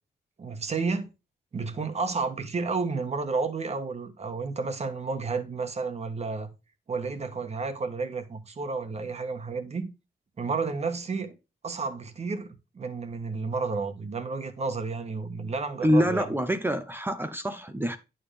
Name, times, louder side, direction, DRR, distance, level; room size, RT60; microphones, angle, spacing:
voice 1, 0.4-1.1 1.5-6.5 6.9-9.9 10.4-11.4 11.6-16.3, right 4 dB, 35° right, 1.5 m, -31 dB
voice 2, 15.8-18.0, equal, 10° right, 0.8 m, -25 dB
11.0 x 6.8 x 3.5 m
wide cardioid pair, 130°, 18 cm